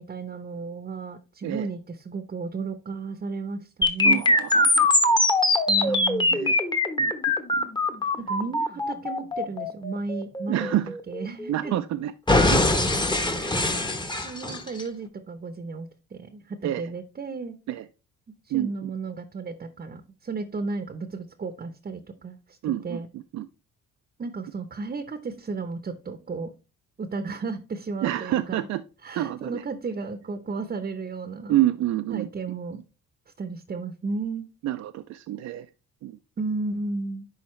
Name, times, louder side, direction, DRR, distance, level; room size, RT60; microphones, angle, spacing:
voice 1, 0.0-4.2 5.7-6.4 8.2-10.8 11.1-11.7 13.3-13.7 14.2-17.6 18.5-22.6 22.8-23.1 24.2-26.5 27.0-28.7 29.0-31.6 32.1-32.8 33.4-34.5 36.4-37.3, right 4 dB, 30° right, 0.7 m, -34 dB
sound 1, 3.8-11.8 12.3-14.8, left 2 dB, 15° left, 1.0 m, -22 dB
voice 2, 4.0-4.9 5.9-6.0 6.3-6.6 7.0-7.7 10.5-10.9 11.5-12.1 12.4-12.7 16.6-16.8 17.7-17.8 18.5-18.9 22.6-23.5 28.0-28.8 29.1-29.6 31.5-32.3 32.7-32.8 34.6-35.7 36.0-36.2, right 13 dB, 60° right, 0.5 m, -28 dB
10.5 x 4.1 x 3.1 m
cardioid pair, 90°, 30 cm